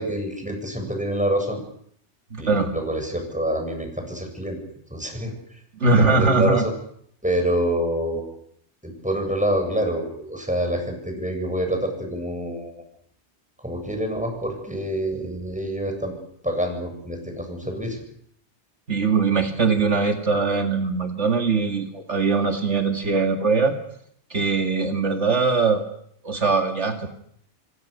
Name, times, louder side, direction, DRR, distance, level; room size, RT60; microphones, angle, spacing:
voice 1, 0.0-1.6 2.4-4.6 4.9-5.3 5.8-6.7 7.2-8.2 8.8-12.8 13.6-16.1 16.4-18.0, right 1 dB, 5° right, 4 dB, 7.9 m, -26 dB
voice 2, 2.3-2.7 5.8-6.6 18.9-23.8 24.3-25.8 26.2-27.1, right 4 dB, 75° right, 4 dB, 2.6 m, -21 dB
28.0 x 25.0 x 6.9 m, 0.68 s
omnidirectional pair, 1.2 m